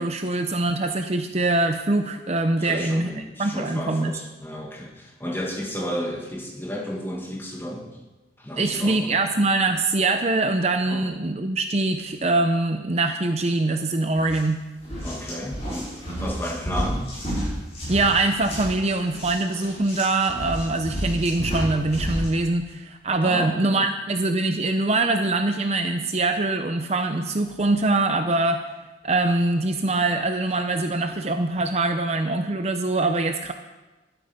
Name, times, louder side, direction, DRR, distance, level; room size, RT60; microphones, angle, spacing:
voice 1, 0.0-4.2 8.6-14.6 17.9-28.6 29.0-33.5, right 2 dB, 35° right, 6 dB, 0.7 m, -23 dB
voice 2, 2.6-8.0 8.4-9.2 10.9-11.1 15.0-15.9 16.2-17.1 23.2-23.9, equal, 10° left, -1 dB, 1.9 m, -33 dB
sound 1, 14.2-14.4 14.8-22.3, equal, 35° left, 6.2 m, -31 dB
13.0 x 12.5 x 5.3 m, 1.1 s
head